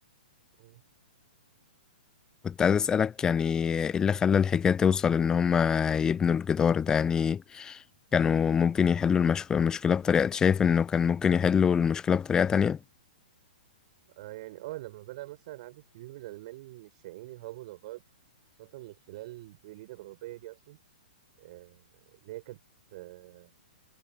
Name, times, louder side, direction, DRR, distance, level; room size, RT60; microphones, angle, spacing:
voice 1, 2.4-7.8 8.1-12.8, left 7 dB, 15° left, 0.4 m, -24 dB
voice 2, 14.2-18.0 18.6-20.8 21.4-22.6 22.9-23.5, right 18 dB, 45° right, 5.9 m, -44 dB
figure-of-eight pair, 115°, 5 cm